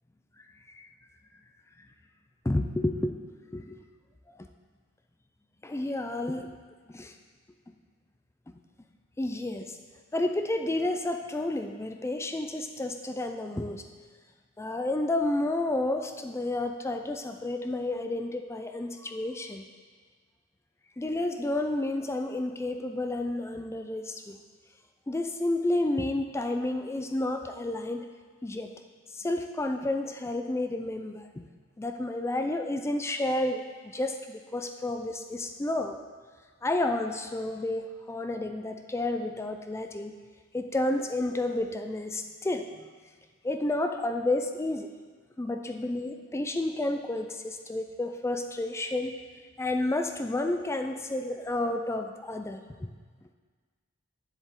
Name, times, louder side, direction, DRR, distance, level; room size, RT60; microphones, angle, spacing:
voice 1, 2.4-3.2 3.5-3.8 4.4-4.5 5.6-6.6 6.9-7.1 9.2-9.8 10.1-13.8 14.6-19.7 21.0-24.4 25.1-28.1 28.4-28.7 29.1-31.5 31.8-36.0 36.6-40.1 40.5-42.7 43.4-44.9 45.4-49.2 49.6-52.9, left 2 dB, 10° left, 5 dB, 0.3 m, -31 dB
9.9 x 7.3 x 3.7 m, 1.5 s
head